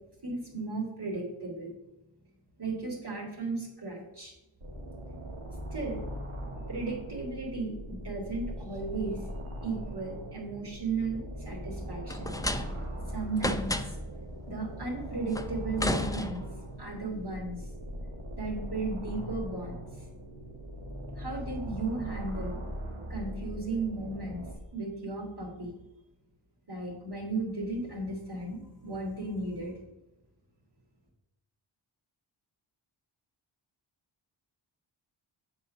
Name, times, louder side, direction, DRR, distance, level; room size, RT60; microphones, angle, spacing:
voice 1, 0.2-1.7 2.6-4.3 5.7-6.0 6.7-9.2 9.6-12.4 13.1-14.0 14.5-16.5 16.8-17.6 18.4-20.0 21.2-22.6 23.1-24.4 24.7-25.7 26.7-29.7, right 3 dB, 50° right, -3 dB, 2.9 m, -35 dB
sound 1, 4.6-24.5, equal, 90° right, 1.7 m, -40 dB
sound 2, 12.1-13.0 13.4-14.1 15.3-16.7, left 1 dB, 5° left, 0.5 m, -32 dB
7.6 x 4.0 x 6.4 m, 0.93 s
wide cardioid pair, 60°, 50 cm